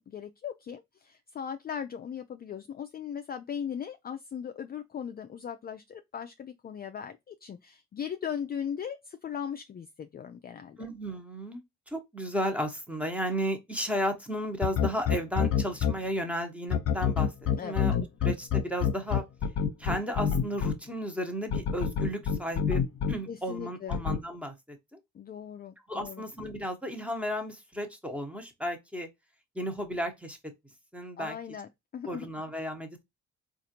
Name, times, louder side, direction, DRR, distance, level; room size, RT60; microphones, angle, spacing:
voice 1, 0.0-10.8 17.6-17.8 23.3-24.0 25.1-26.3 31.2-32.3, left 8 dB, 30° left, 0.4 m, -38 dB
voice 2, 10.8-17.9 18.2-19.2 19.8-22.8 23.1-24.5 24.9-25.0 25.9-29.1 29.5-30.4 30.9-31.4 32.0-33.0, equal, 5° right, 1.0 m, -34 dB
sound 1, 14.6-15.9 16.7-20.7 21.5-23.1 23.9-24.2, left 7 dB, 50° left, 0.9 m, -26 dB
4.0 x 2.5 x 2.8 m
cardioid pair, 90°, 30 cm